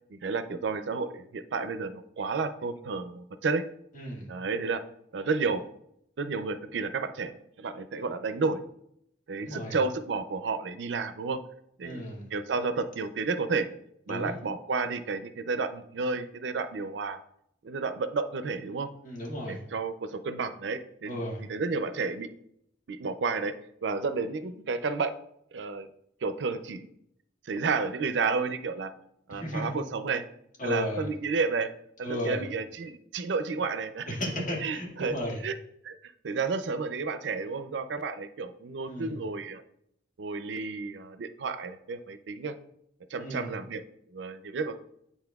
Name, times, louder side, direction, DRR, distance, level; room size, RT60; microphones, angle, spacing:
voice 1, 0.1-3.6 4.3-4.8 5.1-5.6 6.2-7.3 7.6-8.6 9.3-11.4 11.8-12.0 12.3-13.7 14.1-17.2 17.6-18.9 19.5-21.2 21.5-22.3 22.9-23.5 23.8-25.1 25.5-25.9 26.2-26.9 27.4-28.9 29.3-30.2 30.6-31.7 32.0-34.1 34.6-35.2 35.4-35.5 35.8-39.6 40.2-42.5 43.1-43.8 44.1-44.7, right 4 dB, 90° right, 11 dB, 0.5 m, -31 dB
voice 2, 3.9-4.3 9.4-9.8 11.8-12.3 14.1-14.4 19.0-19.6 21.1-21.4 29.3-29.8 30.6-31.1 32.0-32.4 34.1-35.4 38.9-39.2 43.2-43.5, equal, 50° left, -3 dB, 1.8 m, -34 dB
9.7 x 4.2 x 2.3 m, 0.75 s
head